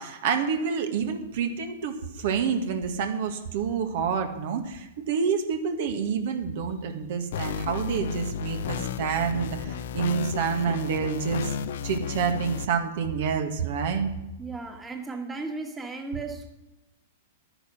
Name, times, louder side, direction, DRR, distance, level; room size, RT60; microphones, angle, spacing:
voice 1, 0.0-11.5 11.8-14.1, right 6 dB, 60° right, 6 dB, 1.8 m, -28 dB
sound 1, 7.3-12.7, left 7 dB, 70° left, 0.7 m, -32 dB
voice 2, 14.4-16.5, right 3 dB, 15° right, 4 dB, 1.8 m, -35 dB
11.5 x 10.0 x 6.3 m, 0.95 s
hypercardioid pair, 125°, 0 cm